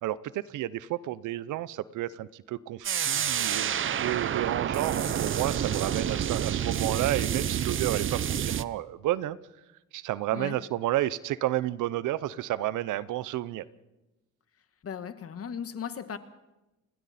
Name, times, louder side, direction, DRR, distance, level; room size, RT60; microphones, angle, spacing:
voice 1, 0.0-9.4 9.9-13.7, right 14 dB, 85° right, 0.8 m, -31 dB
sound 1, 2.8-8.6, right 9 dB, 40° right, 0.7 m, -28 dB
voice 2, 14.8-16.2, left 7 dB, 50° left, 1.6 m, -37 dB
29.5 x 21.0 x 4.3 m
cardioid pair, 90°, 30 cm